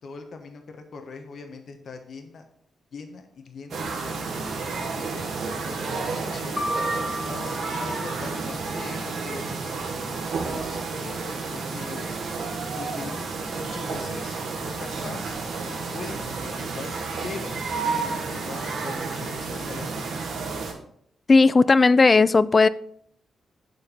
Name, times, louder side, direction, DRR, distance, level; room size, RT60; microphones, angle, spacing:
voice 1, 0.0-2.4 2.9-4.3 4.8-6.6 7.2-9.8 10.4-12.1 12.7-14.4 14.8-17.0 17.2-20.3, left 4 dB, 65° left, 1.0 m, -41 dB
sound 1, 3.7-20.7, right 4 dB, 75° right, 1.4 m, -31 dB
sound 2, 6.6-8.7, equal, 20° left, 1.0 m, -33 dB
voice 2, 21.3-22.7, left 3 dB, 35° left, 0.3 m, -16 dB
7.1 x 4.4 x 5.3 m
cardioid pair, 75°, 0 cm